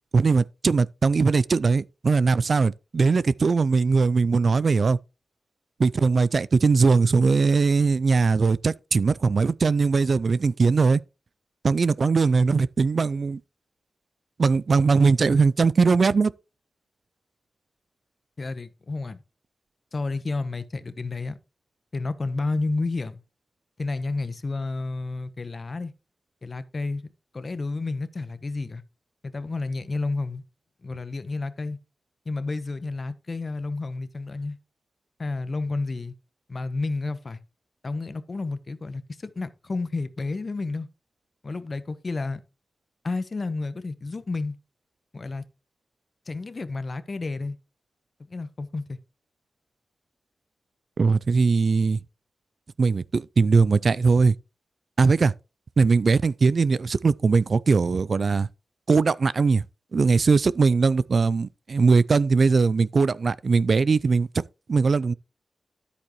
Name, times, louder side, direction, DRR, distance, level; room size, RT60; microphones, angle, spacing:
voice 1, 0.1-5.0 5.8-11.0 11.6-13.4 14.4-16.3 51.0-52.0 52.8-54.3 55.0-55.3 55.8-58.5 58.9-59.6 59.9-64.4 64.7-65.1, right 4 dB, 60° right, 0.3 m, -20 dB
voice 2, 18.4-19.2 19.9-21.4 21.9-23.2 23.8-25.9 26.4-27.1 27.3-28.8 29.2-30.4 30.8-31.8 32.3-34.6 35.2-36.1 36.5-37.4 37.8-40.9 41.4-42.4 43.0-44.6 45.1-45.4 46.3-47.6 48.3-49.0, left 3 dB, 50° left, 1.0 m, -31 dB
10.0 x 8.4 x 3.0 m
cardioid pair, 45°, 0 cm